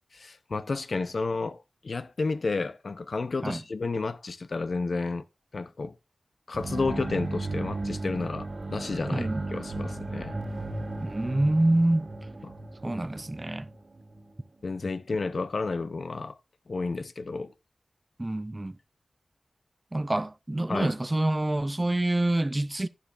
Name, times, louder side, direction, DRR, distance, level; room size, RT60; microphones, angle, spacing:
voice 1, 0.1-5.2 5.5-6.0 6.5-10.4 12.4-12.5 14.6-16.4 16.7-17.5 20.7-20.9, left 3 dB, 65° left, 0.6 m, -31 dB
sound 1, 6.5-14.3, right 2 dB, 55° right, 1.7 m, -35 dB
voice 2, 9.1-9.4 11.0-12.1 12.8-13.7 18.2-18.8 19.9-22.9, right 1 dB, 25° right, 0.4 m, -26 dB
12.0 x 10.0 x 2.5 m
wide cardioid pair, 100°, 0 cm